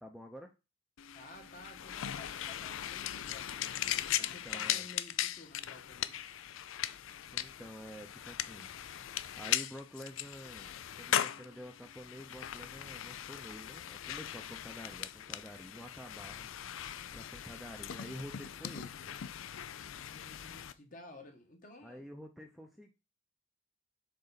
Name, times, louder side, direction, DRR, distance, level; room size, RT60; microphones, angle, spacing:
voice 1, 0.0-0.5 4.2-4.9 7.3-8.7 9.4-16.5 17.1-19.1 21.8-22.9, equal, ahead, 0.6 m, -49 dB
sound 1, 1.0-20.7, left 11 dB, 75° left, 0.4 m, -39 dB
voice 2, 1.1-3.7 4.1-6.2 19.9-22.1, left 2 dB, 40° left, 1.4 m, -54 dB
6.7 x 4.5 x 4.0 m
head